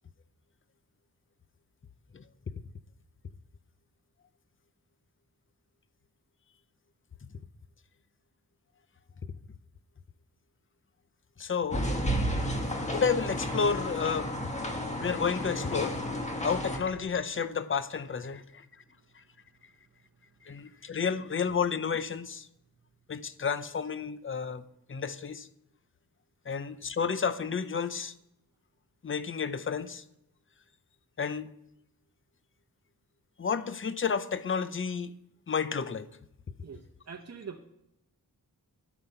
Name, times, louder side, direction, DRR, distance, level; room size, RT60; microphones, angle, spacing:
voice 1, 11.4-11.9 12.9-14.3 15.0-16.0 16.4-18.6 20.4-22.5 23.1-24.6 24.9-25.5 26.5-28.1 29.0-30.0 31.2-31.5 33.4-35.1 35.5-36.1, left 6 dB, 35° left, 13 dB, 0.6 m, -31 dB
stere-atmo-schoeps-m-s-office, 11.7-16.8, equal, 20° left, 1.6 m, -32 dB
voice 2, 36.6-37.7, right 6 dB, 45° right, 1 dB, 0.9 m, -44 dB
10.0 x 9.2 x 5.7 m, 0.82 s
wide cardioid pair, 115°, 38 cm